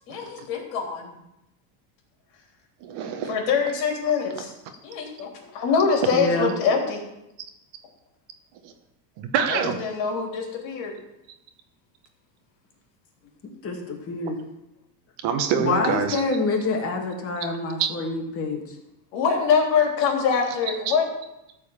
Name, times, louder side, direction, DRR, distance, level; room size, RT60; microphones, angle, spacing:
voice 1, 0.1-1.1 3.3-4.5 4.8-7.0 9.5-10.9 19.1-21.1, left 6 dB, 55° left, 0 dB, 3.4 m, -24 dB
voice 2, 2.8-3.3 8.6-8.7 9.2-9.8 15.2-16.2 17.8-17.9 20.9-21.0, right 7 dB, 50° right, 6 dB, 1.4 m, -25 dB
voice 3, 6.1-6.5 13.6-14.4 15.6-18.6, left 3 dB, 25° left, 1 dB, 2.2 m, -26 dB
13.5 x 4.6 x 7.2 m, 0.90 s
supercardioid pair, 140°, 50 cm